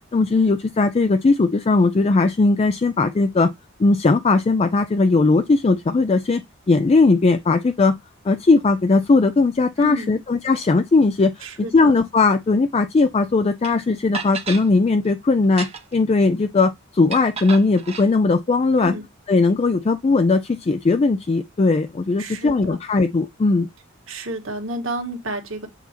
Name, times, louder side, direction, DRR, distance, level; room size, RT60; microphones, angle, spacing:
voice 1, 0.1-3.5 3.8-8.0 8.3-11.5 11.7-18.9 19.3-23.7, left 3 dB, 30° left, 0.4 m, -18 dB
voice 2, 9.8-10.2 11.4-11.9 18.8-19.0 22.2-22.8 24.1-25.7, right 2 dB, 65° right, 1.7 m, -31 dB
sound 1, 13.6-13.7 14.1-14.7 15.4-16.0 17.1-18.1, right 5 dB, 30° right, 1.0 m, -32 dB
8.1 x 4.2 x 2.8 m
head